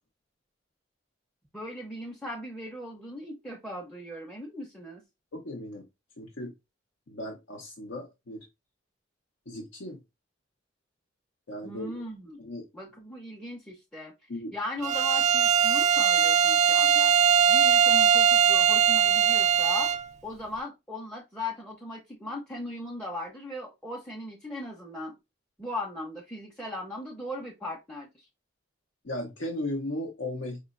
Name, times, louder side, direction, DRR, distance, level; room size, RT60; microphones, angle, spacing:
voice 1, 1.5-5.0 11.6-12.4 12.7-14.1 14.5-17.1 17.5-19.9 20.2-25.1 25.6-28.3, left 1 dB, 5° left, 0.6 m, -38 dB
voice 2, 5.3-5.8 6.2-6.5 7.1-8.5 9.5-10.0 11.5-11.9 12.4-12.6 14.3-14.5 29.0-30.6, left 1 dB, 75° left, 0.8 m, -36 dB
Bowed string instrument, 14.8-20.1, right 8 dB, 40° right, 0.3 m, -21 dB
5.0 x 3.0 x 2.5 m
head